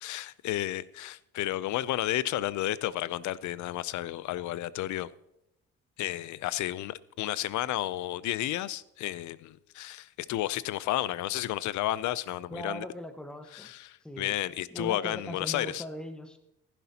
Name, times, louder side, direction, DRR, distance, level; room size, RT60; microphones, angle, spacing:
voice 1, 0.0-5.1 6.0-12.9 13.5-15.8, left 14 dB, 75° left, 0.5 m, -32 dB
voice 2, 12.5-13.7 14.0-14.4 14.7-16.4, equal, 5° left, 1.1 m, -40 dB
15.0 x 11.0 x 2.8 m
cardioid pair, 90°, 30 cm